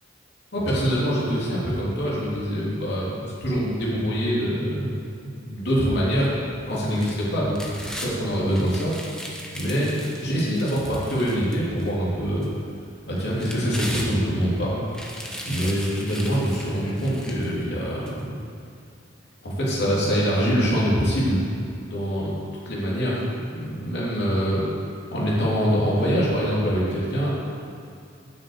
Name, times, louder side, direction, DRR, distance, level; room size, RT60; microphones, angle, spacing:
voice 1, 0.5-6.3 6.7-7.6 8.0-8.9 9.5-12.5 13.0-14.8 15.4-18.3 19.4-21.5 21.9-22.3 22.6-24.7 25.1-27.3, equal, 60° left, -6 dB, 3.1 m, -24 dB
sound 1, 6.7-8.1 8.5-11.9 12.4-12.5 13.2-14.5 14.9-17.5 18.1-18.2, equal, 5° left, 1.1 m, -37 dB
9.4 x 6.6 x 8.0 m, 2.4 s
head